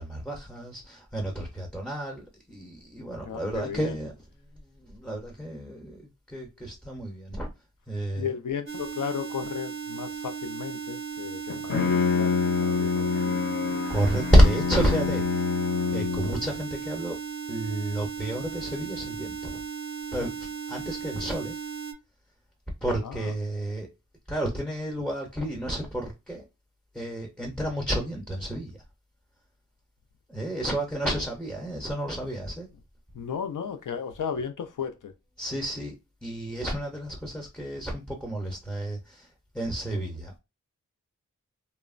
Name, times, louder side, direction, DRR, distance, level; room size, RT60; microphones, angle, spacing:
voice 1, 0.0-4.1 4.8-7.5 7.9-8.3 13.9-15.5 15.9-17.2 17.5-19.6 20.1-20.3 20.7-21.6 22.8-23.9 24.3-26.4 26.9-28.8 30.3-32.7 35.4-36.0 36.2-39.3 39.5-40.4, equal, 5° left, 0.6 m, -29 dB
voice 2, 3.2-4.0 8.2-13.4 23.0-23.3 33.1-35.1, left 7 dB, 80° left, 0.5 m, -35 dB
sound 1, 8.7-21.9, right 6 dB, 40° right, 0.5 m, -36 dB
Bowed string instrument, 11.5-16.6, left 5 dB, 40° left, 0.7 m, -27 dB
3.0 x 2.1 x 2.4 m
wide cardioid pair, 110°, 31 cm